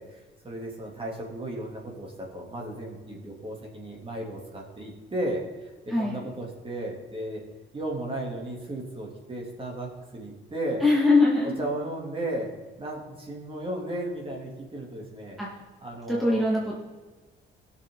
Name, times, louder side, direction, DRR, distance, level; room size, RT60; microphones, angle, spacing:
voice 1, 0.0-7.4 7.7-10.8 11.6-15.4 15.8-16.5, right 1 dB, 25° right, -1 dB, 3.2 m, -35 dB
voice 2, 10.8-11.5 15.4-15.5 16.1-16.7, left 2 dB, ahead, -4 dB, 2.2 m, -22 dB
16.5 x 7.0 x 4.0 m, 1.3 s
cardioid pair, 90°, 20 cm